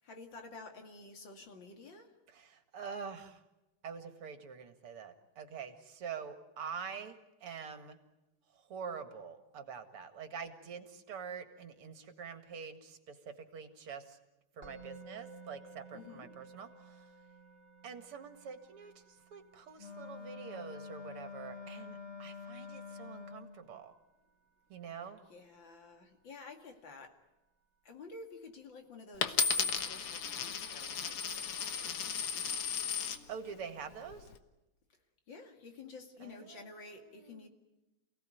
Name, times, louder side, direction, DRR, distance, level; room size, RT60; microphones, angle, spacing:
voice 1, 0.0-2.1 15.9-16.3 25.3-27.2 27.8-32.5 35.3-37.5, left 3 dB, 60° left, 4 dB, 3.0 m, -51 dB
voice 2, 2.3-3.4 3.8-7.2 7.4-8.0 8.5-14.2 14.5-17.1 17.8-23.9 24.7-25.2 33.3-34.3 36.2-37.5, right 6 dB, 80° right, 8 dB, 2.8 m, -46 dB
Musical instrument, 14.6-25.7, right 3 dB, 25° right, 3.5 m, -57 dB
Wind instrument woodwind instrument, 19.8-23.7, left 5 dB, 40° left, 1.3 m, -47 dB
Coin (dropping), 29.2-33.2 33.9-34.4, left 7 dB, 90° left, 2.3 m, -34 dB
28.5 x 17.5 x 9.2 m, 1.0 s
omnidirectional pair, 2.4 m